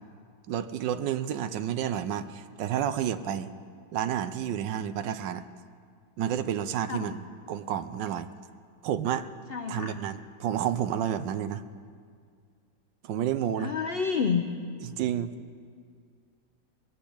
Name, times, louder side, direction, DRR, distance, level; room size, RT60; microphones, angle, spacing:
voice 1, 0.5-3.5 3.9-5.4 6.2-8.3 8.8-9.3 9.7-11.6 13.0-13.7 14.8-15.6, right 10 dB, 85° right, 12 dB, 1.3 m, -30 dB
voice 2, 9.5-10.0 13.6-14.4, left 6 dB, 85° left, 6 dB, 0.5 m, -28 dB
20.0 x 8.1 x 8.6 m, 2.1 s
omnidirectional pair, 1.9 m